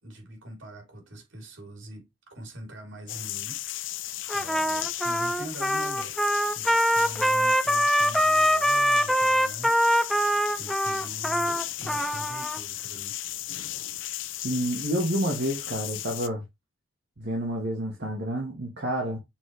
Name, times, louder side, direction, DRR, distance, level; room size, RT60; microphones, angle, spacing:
voice 1, 0.0-6.2 6.5-10.2 10.5-13.1, right 1 dB, 70° right, 3.4 m, -43 dB
sound 1, 3.1-16.3, left 14 dB, 65° left, 0.6 m, -35 dB
Trumpet, 4.3-12.6, equal, ahead, 0.3 m, -24 dB
voice 2, 14.2-16.4 17.2-19.2, right 1 dB, 55° right, 1.6 m, -29 dB
7.3 x 4.4 x 3.2 m
head